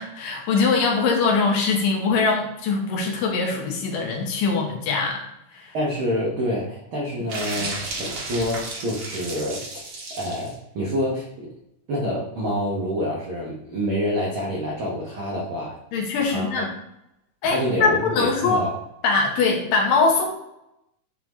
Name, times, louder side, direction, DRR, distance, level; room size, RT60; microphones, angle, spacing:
voice 1, 0.0-5.2 5.5-5.7 15.9-16.7 17.4-18.6 19.0-20.2, left 4 dB, 80° left, 1 dB, 2.7 m, -22 dB
voice 2, 5.7-9.6 10.2-11.5 11.9-15.8 16.3-16.5 17.4-18.7, equal, 85° right, -4 dB, 1.1 m, -27 dB
sound 1, 7.3-10.5, right 2 dB, 60° right, 1.5 m, -33 dB
9.0 x 3.6 x 3.1 m, 0.83 s
omnidirectional pair, 3.9 m